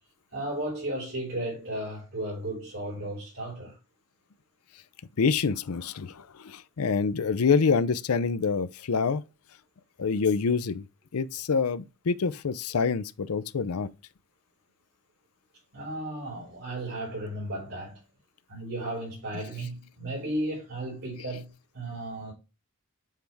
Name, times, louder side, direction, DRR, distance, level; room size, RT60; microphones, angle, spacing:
voice 1, 0.3-3.8 15.7-18.0 18.5-22.3, right 1 dB, 60° right, 3.7 m, -34 dB
voice 2, 5.2-9.2 10.0-10.8 11.1-13.9, left 5 dB, 85° left, 0.5 m, -26 dB
7.4 x 3.5 x 4.5 m
head